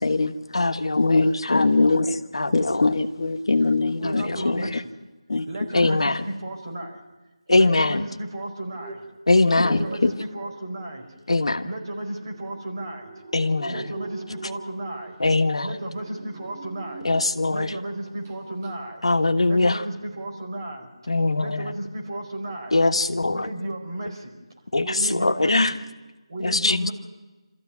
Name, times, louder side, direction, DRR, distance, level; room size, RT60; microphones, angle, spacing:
voice 1, 0.0-0.4 1.0-2.2 2.5-4.6 5.3-5.5 5.8-6.0 9.6-10.1, left 3 dB, 55° left, 8 dB, 1.1 m, -22 dB
voice 2, 0.5-2.1 2.3-3.0 4.0-4.8 5.7-6.2 7.5-8.1 9.3-9.9 11.3-11.7 13.3-13.9 15.2-15.8 17.0-17.7 19.0-19.8 21.1-21.7 22.7-23.5 24.7-25.7 26.4-26.9, left 2 dB, 75° left, 7 dB, 1.4 m, -22 dB
voice 3, 4.0-4.9 5.5-6.0 6.2-7.0 7.5-9.1 9.6-11.0 11.6-13.1 13.7-15.2 15.6-17.1 17.5-19.0 19.5-20.9 21.4-22.8 23.3-24.4 24.8-25.8 26.3-26.9, right 1 dB, 45° right, 2 dB, 4.9 m, -33 dB
sound 1, 8.5-17.7 18.0-18.4 18.6-18.7, right 3 dB, 20° right, 1.8 m, -44 dB
26.5 x 14.0 x 9.4 m, 1.2 s
figure-of-eight pair, 170°, 3 cm